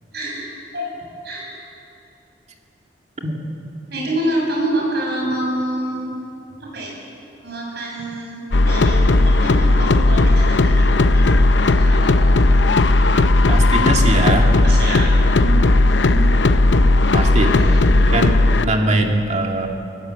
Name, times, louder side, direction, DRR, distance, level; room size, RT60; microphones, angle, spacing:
voice 1, 0.1-0.4 0.7-0.9 1.2-1.5 3.9-6.1 6.6-6.9 7.4-11.3 11.7-12.8 14.6-15.0 15.4-16.3 17.4-17.9, right 1 dB, 65° right, -3 dB, 7.3 m, -27 dB
sound 1, 8.5-18.7, left 2 dB, 90° left, 0.8 m, -15 dB
voice 2, 13.5-14.5 17.1-19.7, right 2 dB, 40° right, 2 dB, 2.4 m, -21 dB
25.5 x 17.5 x 7.9 m, 2.7 s
head